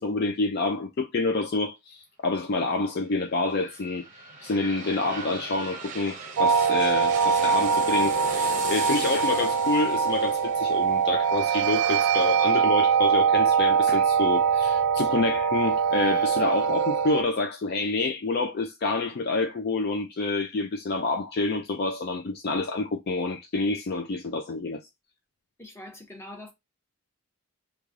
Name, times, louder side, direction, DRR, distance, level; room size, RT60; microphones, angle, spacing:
voice 1, 0.0-4.1 4.4-24.8, left 3 dB, 45° left, 0.4 m, -28 dB
sound 1, 3.3-12.9 13.3-13.4, right 4 dB, 35° right, 0.7 m, -38 dB
sound 2, 6.4-17.2, right 6 dB, 75° right, 0.4 m, -23 dB
voice 2, 25.6-26.5, left 1 dB, 10° left, 0.9 m, -43 dB
3.2 x 2.3 x 3.6 m
head